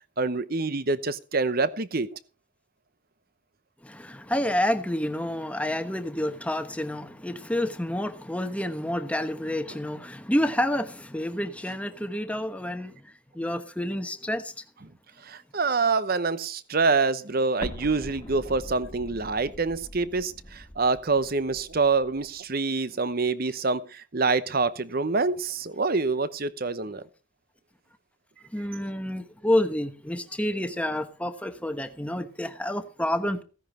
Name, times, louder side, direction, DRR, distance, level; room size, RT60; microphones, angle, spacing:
voice 1, 0.2-2.1 15.2-27.0, right 4 dB, 45° right, 0.9 m, -26 dB
voice 2, 3.8-13.0 13.3-14.5 28.5-33.4, left 1 dB, 5° left, 1.1 m, -29 dB
Explosion, 17.6-22.4, left 1 dB, 20° left, 1.7 m, -42 dB
16.0 x 10.5 x 4.3 m
head